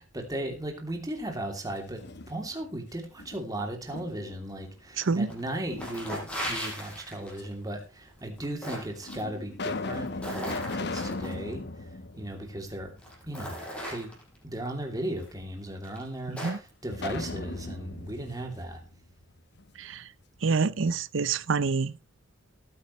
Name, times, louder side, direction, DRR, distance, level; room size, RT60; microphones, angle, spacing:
voice 1, 0.0-11.6 12.1-12.9 13.2-13.6 13.9-14.1 14.4-18.8, right 1 dB, 20° right, 2.9 m, -36 dB
sound 1, 1.8-2.7 3.2-4.5 5.7-6.5 7.4-7.5 8.4-8.5 9.1-13.2 13.5-13.6 16.9-19.7, left 3 dB, 60° left, 0.9 m, -38 dB
sound 2, 5.0-5.4 5.7-7.5 8.2-9.2 9.8-11.3 12.4-12.5 13.0-14.4 15.2-15.3 15.8-16.7, equal, 5° left, 5.8 m, -37 dB
voice 2, 5.0-5.3 16.3-16.6 19.8-20.1 20.4-21.9, right 4 dB, 75° right, 0.6 m, -27 dB
19.0 x 9.7 x 3.2 m
head